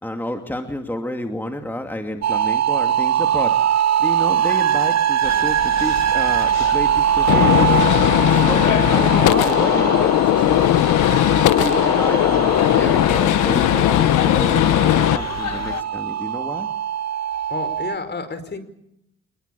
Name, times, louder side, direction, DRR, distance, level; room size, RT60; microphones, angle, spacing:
voice 1, 0.0-3.6 4.0-7.8 8.2-11.0 11.3-16.7, left 1 dB, 5° left, 4 dB, 2.6 m, -30 dB
sound 1, 2.2-18.0, right 9 dB, 60° right, 1.0 m, -22 dB
sound 2, 5.2-15.8, left 9 dB, 60° left, 1.5 m, -32 dB
Gunshot gunfire, 7.3-15.2, left 13 dB, 85° left, 1.1 m, -17 dB
voice 2, 17.5-18.7, left 4 dB, 35° left, 12 dB, 5.0 m, -30 dB
27.5 x 21.5 x 7.1 m, 0.77 s
cardioid pair, 90°, 30 cm